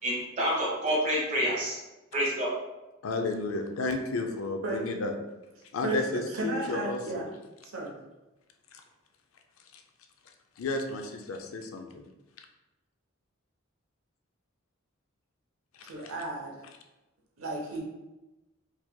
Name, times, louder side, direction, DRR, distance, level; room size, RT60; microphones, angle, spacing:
voice 1, 0.0-1.8 2.1-2.5, equal, 35° right, -6 dB, 1.4 m, -28 dB
voice 2, 3.0-5.1 5.7-7.2 8.7-8.8 9.7-9.8 10.6-12.0 15.8-15.9, left 3 dB, 75° left, 4 dB, 0.5 m, -32 dB
voice 3, 5.8-7.3 7.7-7.9 15.9-16.5 17.4-17.8, right 2 dB, 80° right, -2 dB, 0.9 m, -33 dB
4.6 x 2.8 x 2.2 m, 1.0 s
head